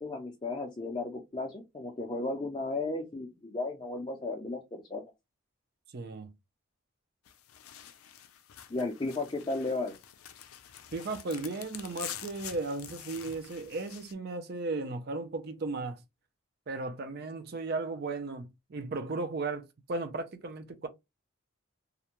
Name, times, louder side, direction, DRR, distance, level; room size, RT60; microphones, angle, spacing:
voice 1, 0.0-5.0 8.7-9.9, left 2 dB, 25° left, 0.4 m, -34 dB
voice 2, 5.9-6.3 10.9-16.0 16.7-20.9, right 3 dB, 50° right, 0.5 m, -35 dB
sound 1, 7.3-14.1, left 10 dB, 80° left, 0.4 m, -46 dB
2.4 x 2.1 x 2.9 m
head